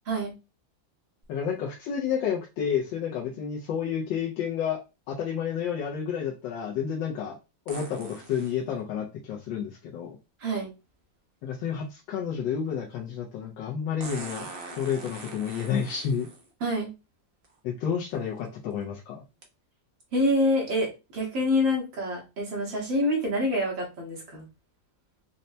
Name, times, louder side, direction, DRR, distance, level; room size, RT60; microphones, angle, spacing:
sound 1, 1.2-1.3 7.7-8.6 10.6-10.7 14.0-16.5 17.4-17.5 18.2-18.5 19.4-19.5, right 2 dB, 65° right, 0.5 m, -42 dB
voice 1, 1.3-4.8 5.1-7.4 7.7-10.2 11.4-14.5 14.7-16.3 17.6-19.2, left 7 dB, 85° left, -2 dB, 1.4 m, -30 dB
voice 2, 10.4-10.7 16.6-16.9 20.1-24.5, left 1 dB, 80° right, -2 dB, 2.2 m, -26 dB
5.4 x 2.1 x 2.6 m, 0.27 s
omnidirectional pair, 2.0 m